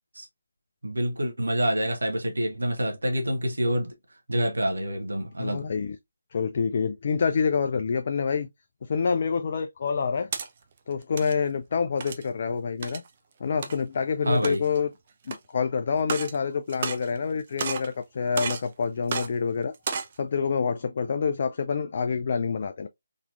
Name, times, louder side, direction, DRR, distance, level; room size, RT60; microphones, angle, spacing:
voice 1, 0.8-3.9 4.3-5.7 14.2-14.6, equal, 65° right, 1.0 m, -27 dB
voice 2, 5.4-6.0 6.3-8.5 8.8-10.3 10.9-13.0 13.4-14.9 15.3-19.7 20.2-22.9, left 5 dB, 40° left, 0.3 m, -27 dB
sound 1, 10.0-10.5 11.0-11.3 12.0-12.3 12.8-13.1 13.6-13.8 14.3-14.8 15.3-15.4 16.0-16.4 16.7-17.3 17.6-17.9 18.4-18.7 19.1-19.3 19.7-20.1, right 5 dB, 35° right, 0.5 m, -32 dB
3.8 x 2.9 x 2.4 m
figure-of-eight pair, 150°, 0 cm